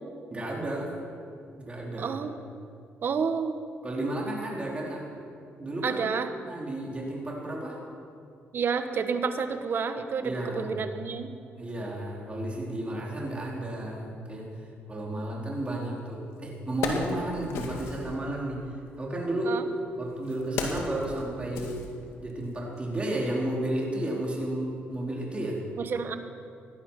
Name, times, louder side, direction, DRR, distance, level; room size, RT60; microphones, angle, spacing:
voice 1, 0.3-0.9 1.5-2.1 3.8-5.2 5.6-6.0 6.4-7.8 10.2-10.9 11.6-14.5 14.9-18.7 19.0-19.6 20.0-21.8 22.2-25.6, right 1 dB, 25° right, -3 dB, 4.3 m, -32 dB
voice 2, 2.0-2.4 3.0-3.6 5.8-6.3 8.5-11.3 19.4-19.6 25.8-26.1, right 6 dB, 55° right, 9 dB, 1.2 m, -29 dB
Wood, 16.0-16.1 16.5-18.1 19.1-22.4 22.8-22.9, left 4 dB, 85° left, 1.8 m, -35 dB
17.0 x 11.5 x 5.8 m, 2.4 s
cardioid pair, 75°, 4 cm